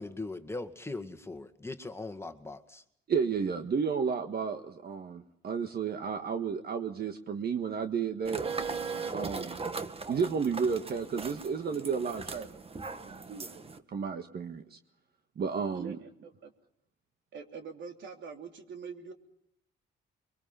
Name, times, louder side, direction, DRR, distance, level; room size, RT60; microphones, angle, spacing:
voice 1, 0.0-2.8, left 2 dB, 10° left, 7 dB, 1.9 m, -40 dB
voice 2, 3.1-8.5 9.1-9.8 10.1-13.6 13.9-14.8 15.4-16.0, right 6 dB, 50° right, 6 dB, 1.7 m, -32 dB
sound 1, 8.2-13.8, right 4 dB, 30° right, 1.6 m, -38 dB
voice 3, 15.7-16.5 17.3-19.1, right 6 dB, 70° right, 5 dB, 3.1 m, -44 dB
23.5 x 23.0 x 5.8 m, 0.76 s
cardioid pair, 90°, 20 cm